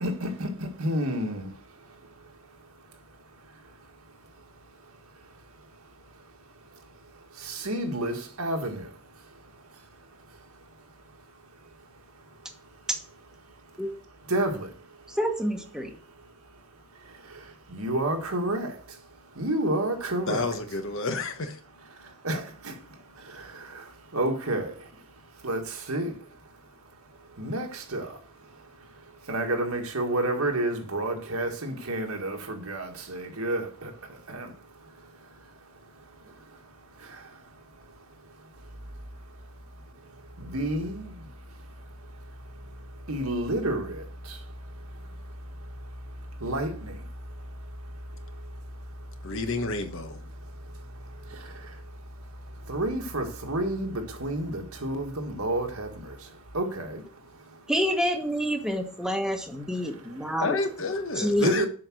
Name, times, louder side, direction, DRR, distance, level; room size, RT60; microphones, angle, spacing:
voice 1, 0.0-0.5 0.8-1.5 7.5-8.8 14.3-14.7 17.7-18.7 19.4-20.4 22.2-22.7 24.1-24.7 25.4-25.6 25.9-26.1 27.4-28.1 29.3-33.9 34.3-34.5 40.4-41.1 43.1-44.0 46.4-46.9 52.7-55.9 56.5-57.0 61.4-61.7, right 1 dB, 80° right, 1.8 m, -29 dB
voice 2, 15.1-15.9 57.7-60.6 61.2-61.5, equal, 5° right, 1.2 m, -27 dB
voice 3, 20.3-21.6 49.2-50.3 60.4-61.7, left 3 dB, 60° left, 1.2 m, -30 dB
7.7 x 5.8 x 6.2 m
head